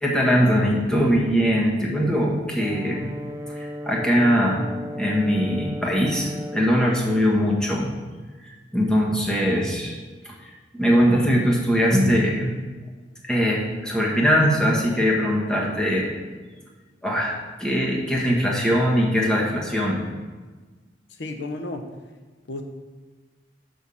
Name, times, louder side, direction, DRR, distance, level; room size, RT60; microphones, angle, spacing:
voice 1, 0.0-3.1 3.5-7.9 8.4-9.9 10.2-12.6 13.3-16.1 17.0-17.3 17.6-20.0, equal, 5° left, -3 dB, 1.6 m, -21 dB
Brass instrument, 2.6-6.7, left 1 dB, 15° right, 0.5 m, -35 dB
voice 2, 21.1-21.9 22.5-22.6, left 2 dB, 75° left, 5 dB, 0.8 m, -32 dB
6.2 x 5.9 x 7.1 m, 1.3 s
head